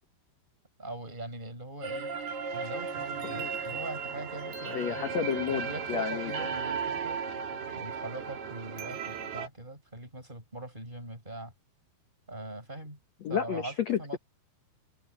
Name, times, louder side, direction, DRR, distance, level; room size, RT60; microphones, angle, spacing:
voice 1, 0.8-2.1 2.5-5.1 5.5-7.2 7.7-11.5 12.3-13.0 13.3-14.2, right 2 dB, 10° right, 7.4 m, -41 dB
sound 1, 1.8-9.5, right 5 dB, 60° right, 4.9 m, -35 dB
voice 2, 3.2-3.6 4.6-6.3 7.6-7.7 13.2-14.2, left 8 dB, 80° left, 1.5 m, -32 dB
omnidirectional pair, 5.3 m